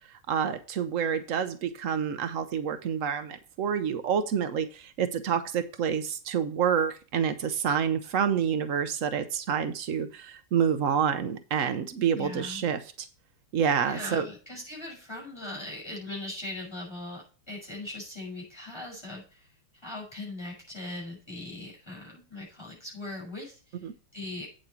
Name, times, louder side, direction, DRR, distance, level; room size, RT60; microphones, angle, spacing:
voice 1, 0.3-13.1 13.5-14.2 23.8-23.9, right 7 dB, 85° right, 10 dB, 0.7 m, -28 dB
voice 2, 12.2-12.6 13.8-19.5 19.8-23.9 24.1-24.5, left 2 dB, 10° left, -2 dB, 5.8 m, -40 dB
8.6 x 7.6 x 4.4 m, 0.37 s
omnidirectional pair, 2.4 m